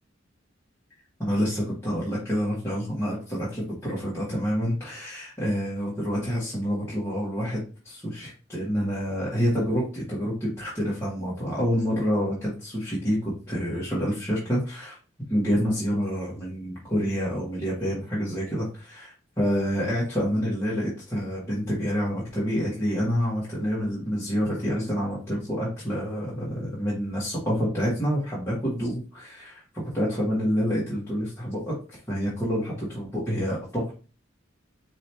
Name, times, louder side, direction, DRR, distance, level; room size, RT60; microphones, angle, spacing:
voice 1, 1.2-15.0 15.3-33.9, equal, 15° left, -8 dB, 1.5 m, -28 dB
4.8 x 3.4 x 3.0 m, 0.35 s
head